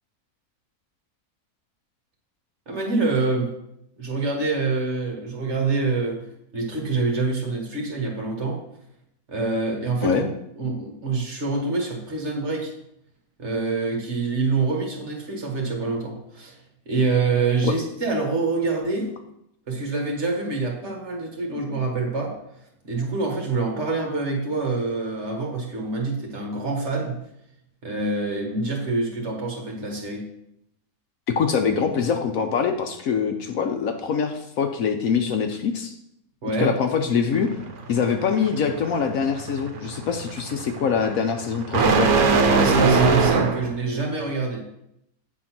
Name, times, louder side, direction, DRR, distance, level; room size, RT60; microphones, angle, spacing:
voice 1, 2.7-3.5 4.0-6.2 6.5-8.6 9.3-10.2 10.6-12.7 13.4-16.5 16.8-19.1 19.7-22.3 22.8-27.2 27.8-30.2 36.4-36.7 42.5-44.6, right 3 dB, 45° right, 0 dB, 1.7 m, -26 dB
voice 2, 31.4-35.9 36.6-37.5 37.9-42.1, left 6 dB, 65° left, 5 dB, 1.0 m, -24 dB
sound 1, 37.3-43.8, right 4 dB, 70° right, 1.2 m, -22 dB
8.6 x 3.9 x 5.9 m, 0.78 s
omnidirectional pair, 1.7 m